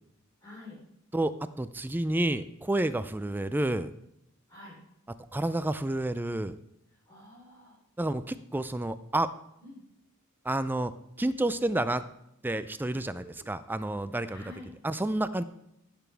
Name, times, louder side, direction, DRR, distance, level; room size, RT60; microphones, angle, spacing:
voice 1, 0.4-0.8 4.5-4.8 7.1-7.8 9.6-9.8 12.9-13.5 14.3-14.7, left 2 dB, 20° left, -8 dB, 3.5 m, -48 dB
voice 2, 1.1-3.9 5.3-6.6 8.0-9.3 10.4-10.9 11.2-12.0 12.4-14.4 14.8-15.4, right 1 dB, 10° right, 12 dB, 0.4 m, -29 dB
16.0 x 7.0 x 3.4 m, 0.82 s
head